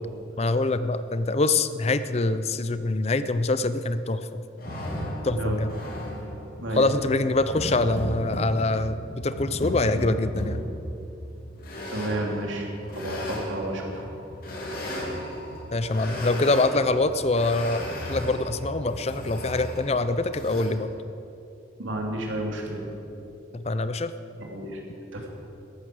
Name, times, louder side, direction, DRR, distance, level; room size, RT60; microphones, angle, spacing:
voice 1, 0.4-4.4 5.2-5.7 6.7-10.6 15.7-20.9 23.5-24.1, left 2 dB, 30° left, 12 dB, 0.5 m, -25 dB
sound 1, 4.6-20.7, equal, 50° left, 3.0 m, -35 dB
voice 2, 11.9-12.7 12.9-14.1 21.8-22.9 24.5-24.8 25.1-25.3, right 1 dB, 85° right, 0 dB, 2.8 m, -31 dB
14.0 x 11.0 x 7.8 m, 2.8 s
head